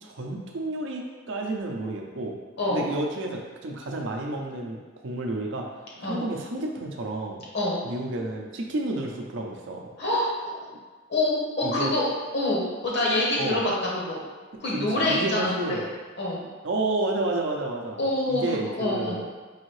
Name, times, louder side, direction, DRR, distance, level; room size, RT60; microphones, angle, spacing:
voice 1, 0.0-2.4 2.7-5.7 6.0-7.4 7.8-9.8 11.6-11.9 13.4-13.6 14.7-15.9 16.6-18.0 18.3-19.2, right 2 dB, 65° right, 1 dB, 0.6 m, -30 dB
voice 2, 2.6-2.9 6.0-6.2 7.5-7.8 10.0-10.7 11.1-12.1 12.3-14.2 14.6-15.8 16.2-16.5 18.0-18.4 18.7-19.2, left 1 dB, 60° left, -4 dB, 1.0 m, -26 dB
4.8 x 2.7 x 3.1 m, 1.4 s
head